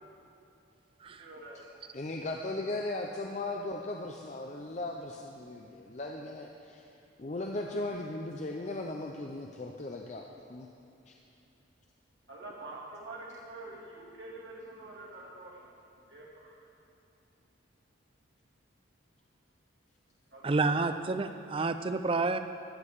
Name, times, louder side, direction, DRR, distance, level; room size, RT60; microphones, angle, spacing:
voice 1, 1.2-1.7 5.4-5.9 12.3-15.7 16.1-16.6 20.3-20.8, right 2 dB, 60° right, -4 dB, 2.3 m, -46 dB
voice 2, 1.9-6.8 7.2-10.7 11.1-11.2, left 2 dB, 35° left, 1 dB, 0.5 m, -37 dB
voice 3, 20.4-22.4, right 3 dB, 25° right, 9 dB, 0.4 m, -29 dB
14.0 x 5.2 x 8.1 m, 2.8 s
head